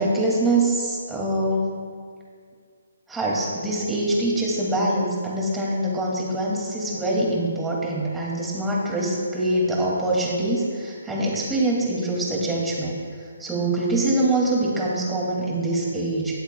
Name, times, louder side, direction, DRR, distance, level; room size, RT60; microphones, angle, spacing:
voice 1, 0.0-1.8 3.1-13.0 13.4-16.4, right 1 dB, 5° right, -4 dB, 2.2 m, -24 dB
21.0 x 8.0 x 2.2 m, 2.1 s
figure-of-eight pair, 145°, 0 cm